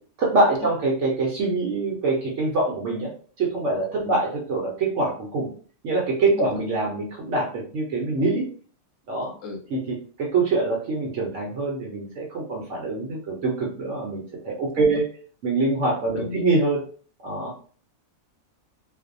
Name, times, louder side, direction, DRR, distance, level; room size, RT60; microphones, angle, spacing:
voice 1, 0.2-3.1 3.4-5.5 5.8-8.5 9.1-9.3 9.7-9.8 10.2-15.0 15.4-16.8 17.2-17.5, right 3 dB, 65° right, -2 dB, 0.9 m, -24 dB
voice 2, 6.3-6.6 9.4-9.6 14.7-15.0 16.1-16.4, left 3 dB, 70° left, 2 dB, 0.9 m, -34 dB
2.5 x 2.1 x 2.5 m, 0.43 s
omnidirectional pair, 1.5 m